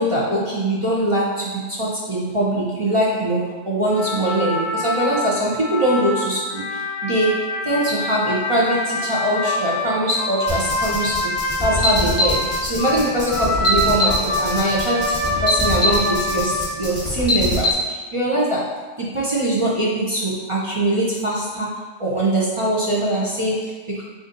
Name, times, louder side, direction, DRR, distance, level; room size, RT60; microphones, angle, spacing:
voice 1, 0.0-11.3 11.6-24.0, right 1 dB, 40° right, -6 dB, 0.4 m, -22 dB
sound 1, 4.0-17.0, left 1 dB, 65° left, 0.8 m, -25 dB
sound 2, 10.5-17.7, left 1 dB, 10° right, 1.1 m, -23 dB
3.9 x 2.5 x 3.8 m, 1.4 s
omnidirectional pair, 1.3 m